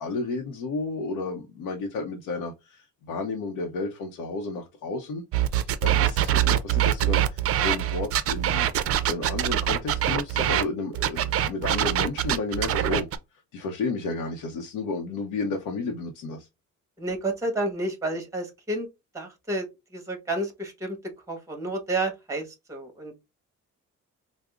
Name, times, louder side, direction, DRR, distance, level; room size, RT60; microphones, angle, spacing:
voice 1, 0.0-5.2 5.5-8.7 9.1-13.1 13.5-16.5, left 3 dB, 85° left, 0.7 m, -32 dB
sound 1, 5.3-10.6 11.0-13.2, right 11 dB, 50° right, 0.4 m, -24 dB
voice 2, 17.0-18.9 19.1-19.6 19.9-21.0 21.3-23.2, right 2 dB, 10° right, 1.2 m, -30 dB
4.8 x 2.0 x 2.3 m
cardioid pair, 90°, 30 cm